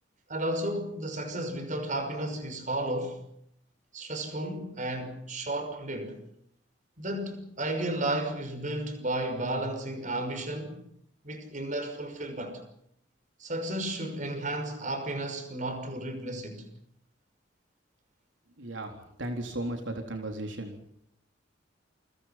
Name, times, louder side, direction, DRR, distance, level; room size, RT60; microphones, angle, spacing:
voice 1, 0.3-3.2 3.9-6.2 7.0-10.8 11.2-12.6 13.4-16.6, right 1 dB, 45° right, 5.9 m, -33 dB
voice 2, 18.6-18.9 19.2-20.7, right 1 dB, 80° right, 3.8 m, -35 dB
29.0 x 24.5 x 6.0 m
head